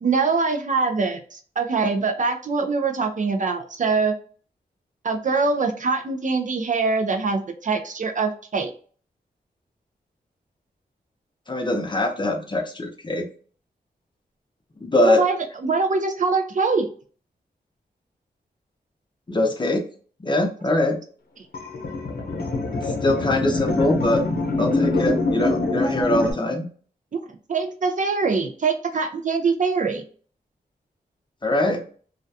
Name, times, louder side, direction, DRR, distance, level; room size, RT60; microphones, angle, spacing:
voice 1, 0.0-4.2 5.0-8.7 15.0-15.4 15.6-16.9 27.1-27.2 27.5-30.0, right 4 dB, 50° right, 4 dB, 0.4 m, -23 dB
voice 2, 11.5-13.3 14.8-15.2 19.3-19.8 20.2-21.0 22.7-24.2 24.6-26.7 31.4-31.8, left 1 dB, 30° left, 2 dB, 0.6 m, -22 dB
sound 1, 21.5-26.3, left 2 dB, 65° left, 0.7 m, -24 dB
2.4 x 2.2 x 2.6 m, 0.43 s
wide cardioid pair, 75°, 17 cm